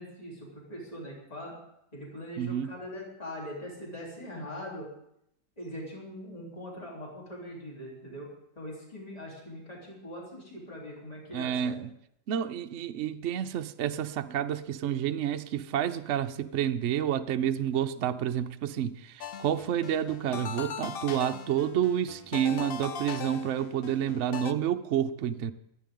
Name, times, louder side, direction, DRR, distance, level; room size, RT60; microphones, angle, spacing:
voice 1, 0.0-1.6 1.9-4.9 5.6-8.3 8.6-11.7, equal, 20° left, 3.6 m, -41 dB
voice 2, 2.4-2.8 11.3-11.9 12.3-25.5, right 10 dB, 60° right, 0.8 m, -29 dB
sound 1, 19.2-24.5, left 7 dB, 70° left, 0.5 m, -40 dB
25.0 x 9.8 x 3.7 m
omnidirectional pair, 1.8 m